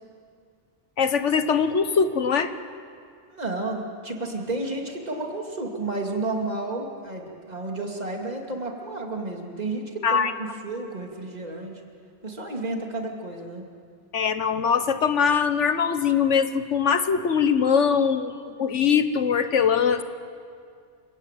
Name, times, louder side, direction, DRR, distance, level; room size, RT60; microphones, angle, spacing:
voice 1, 1.0-2.5 10.0-10.3 14.1-18.3 18.6-20.0, left 6 dB, 90° left, 10 dB, 1.5 m, -22 dB
voice 2, 3.3-11.8 12.2-13.6, right 2 dB, 35° right, 1 dB, 2.8 m, -31 dB
29.5 x 16.0 x 9.2 m, 2.2 s
omnidirectional pair, 1.2 m